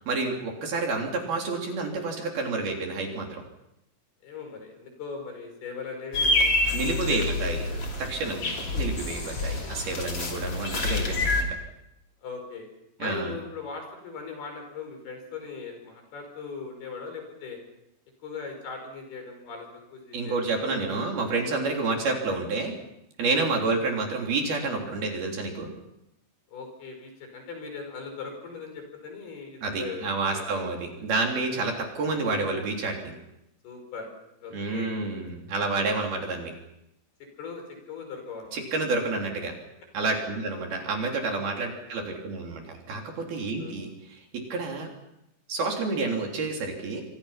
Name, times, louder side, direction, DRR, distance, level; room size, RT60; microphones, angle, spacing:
voice 1, 0.1-3.4 6.7-7.7 8.0-11.5 13.0-13.3 20.1-22.7 23.2-25.7 29.6-33.1 34.5-36.5 38.5-39.5 39.9-44.2 44.5-44.9 45.5-47.0, right 3 dB, 55° right, 1 dB, 5.2 m, -29 dB
voice 2, 4.2-6.6 7.1-7.8 12.2-12.6 13.0-17.6 18.2-20.8 26.5-30.6 32.1-32.2 33.6-34.1 34.4-35.0 37.4-37.6 37.9-38.6 43.6-43.8, left 5 dB, 55° left, 4 dB, 7.1 m, -39 dB
sound 1, 6.1-11.4, left 2 dB, 35° left, 3.7 m, -27 dB
27.5 x 25.0 x 5.9 m, 0.83 s
omnidirectional pair, 5.4 m